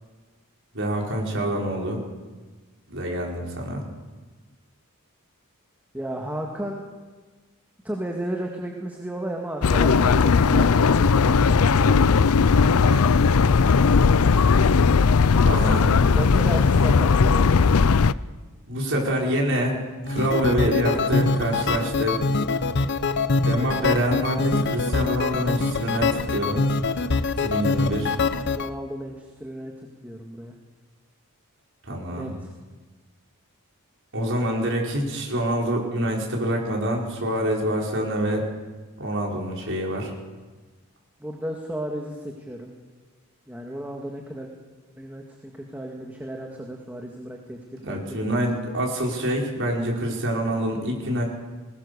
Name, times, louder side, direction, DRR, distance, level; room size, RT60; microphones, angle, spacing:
voice 1, 0.7-2.0 2.9-3.8 12.7-13.1 15.4-15.9 18.7-19.8 20.1-22.2 23.5-26.6 27.4-28.1 31.8-32.3 34.1-38.4 39.0-40.1 47.8-51.2, equal, 60° right, -1 dB, 5.1 m, -26 dB
voice 2, 5.9-6.8 7.8-12.5 16.1-17.9 28.4-29.7 30.0-30.6 32.1-32.5 41.2-42.7 43.5-44.5 45.0-48.6, right 1 dB, 10° right, 1 dB, 2.0 m, -34 dB
sound 1, 9.6-18.1, left 5 dB, 75° left, 0.5 m, -18 dB
sound 2, 20.1-28.7, left 3 dB, 55° left, 0.9 m, -24 dB
21.5 x 20.0 x 6.8 m, 1.3 s
head